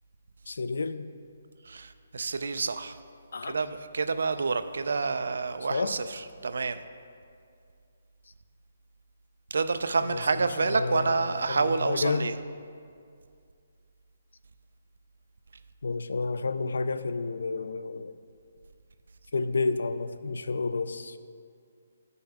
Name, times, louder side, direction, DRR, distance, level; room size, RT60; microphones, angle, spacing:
voice 1, 0.5-1.1 3.3-3.6 5.0-5.1 5.7-6.0 10.0-12.3 15.8-18.1 19.3-21.2, left 4 dB, 75° left, 12 dB, 0.3 m, -31 dB
voice 2, 1.6-3.0 3.4-6.8 9.5-12.3, right 4 dB, 65° right, 11 dB, 0.4 m, -28 dB
12.0 x 5.4 x 3.5 m, 2.3 s
hypercardioid pair, 180°, 0 cm